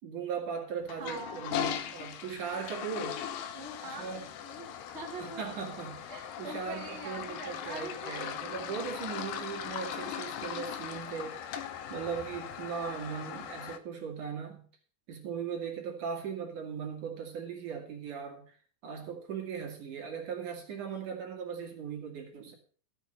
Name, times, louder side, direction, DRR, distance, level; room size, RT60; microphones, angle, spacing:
voice 1, 0.0-3.2 3.9-4.3 5.2-11.4 11.9-14.7 15.1-18.4 18.8-22.5, right 6 dB, 50° right, 1 dB, 3.3 m, -38 dB
Toilet flush, 0.8-13.8, left 9 dB, 90° left, 1.9 m, -39 dB
voice 2, 1.0-1.4 3.5-5.4 6.1-8.3, right 2 dB, 25° right, 0 dB, 1.3 m, -44 dB
14.0 x 7.5 x 6.4 m, 0.43 s
omnidirectional pair, 5.2 m